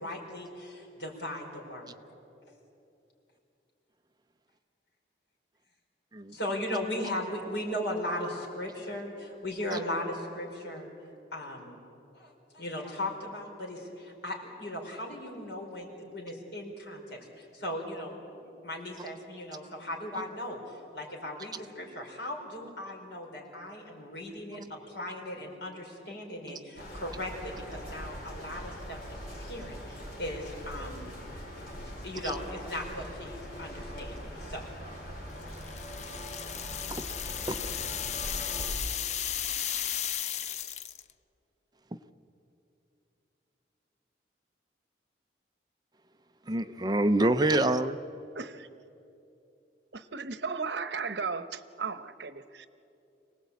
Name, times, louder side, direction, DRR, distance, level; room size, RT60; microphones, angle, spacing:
voice 1, 0.0-2.0 2.5-2.6 6.3-10.9 11.3-11.8 12.2-18.1 18.4-24.6 24.9-31.1 32.0-34.7 40.5-40.7, left 1 dB, 80° left, 4.8 m, -38 dB
sound 1, 26.8-38.7, equal, 55° left, 5.5 m, -41 dB
sound 2, 35.5-41.1, left 10 dB, 40° left, 0.5 m, -35 dB
voice 2, 46.5-48.0, right 1 dB, 20° right, 0.6 m, -26 dB
voice 3, 48.3-48.7 49.9-52.7, right 5 dB, 75° right, 1.0 m, -35 dB
25.5 x 18.5 x 8.4 m
head